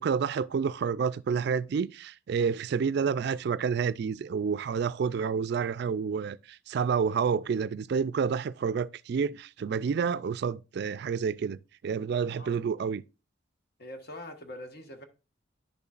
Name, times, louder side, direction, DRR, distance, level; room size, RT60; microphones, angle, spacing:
voice 1, 0.0-11.6 11.8-13.0, right 6 dB, 55° right, 0.3 m, -29 dB
voice 2, 13.8-15.0, left 1 dB, 50° left, 1.3 m, -43 dB
10.0 x 6.8 x 2.4 m
head